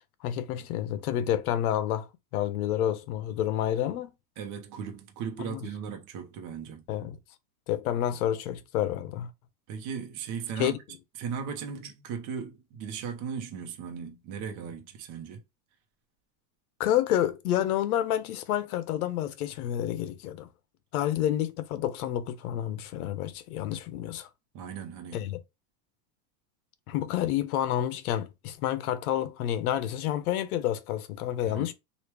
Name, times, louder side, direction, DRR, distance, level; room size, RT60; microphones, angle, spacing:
voice 1, 0.2-4.1 5.4-5.6 6.9-7.2 7.7-9.3 10.6-10.8 16.8-20.5 20.9-24.3 25.1-25.4 26.9-31.7, left 11 dB, 75° left, 0.7 m, -29 dB
voice 2, 4.4-6.8 9.7-10.8 11.2-15.4 24.5-25.3 31.4-31.7, right 7 dB, 40° right, 0.9 m, -37 dB
3.1 x 2.5 x 3.3 m
supercardioid pair, 130°, 44 cm